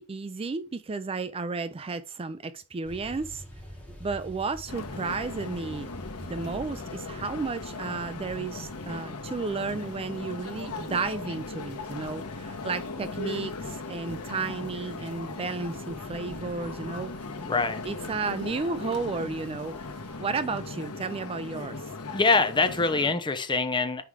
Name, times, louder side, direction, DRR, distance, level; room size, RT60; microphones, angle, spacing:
voice 1, 0.0-3.4 4.0-5.9 6.2-17.1 17.8-21.9, right 4 dB, 25° right, 0.4 m, -33 dB
sound 1, 2.8-20.2, equal, 5° left, 2.5 m, -48 dB
sound 2, 4.7-23.1, left 3 dB, 90° left, 1.1 m, -38 dB
voice 2, 17.4-17.8 22.1-24.0, left 3 dB, 20° left, 0.7 m, -24 dB
5.7 x 4.8 x 4.8 m
head